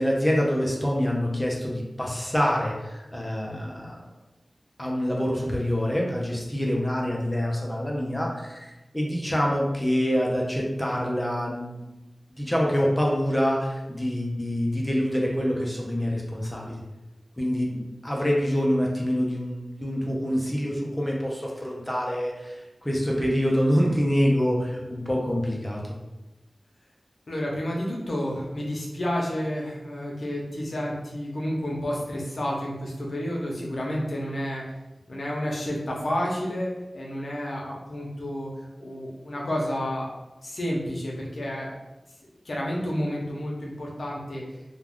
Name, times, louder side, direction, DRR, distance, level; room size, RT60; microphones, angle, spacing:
voice 1, 0.0-4.0 4.8-11.8 12.4-16.7 17.4-25.8, equal, 15° left, -2 dB, 0.6 m, -26 dB
voice 2, 27.3-34.6 35.1-38.5 38.8-40.1 40.4-41.7 42.4-44.4, equal, 75° left, -2 dB, 0.7 m, -30 dB
2.3 x 2.3 x 3.5 m, 1.0 s
wide cardioid pair, 50°, 0 cm